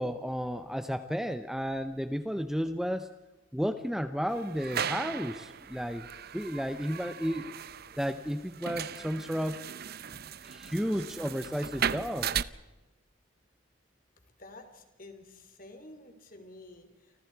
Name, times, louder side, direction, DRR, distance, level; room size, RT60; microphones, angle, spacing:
voice 1, 0.0-3.1 3.5-7.5 8.0-9.6 10.4-12.3, equal, ahead, 9 dB, 0.8 m, -33 dB
sound 1, 4.3-12.4, right 8 dB, 50° right, 0.7 m, -37 dB
voice 2, 14.4-17.3, left 2 dB, 40° left, 7 dB, 3.5 m, -50 dB
30.0 x 25.0 x 4.7 m, 1.1 s
head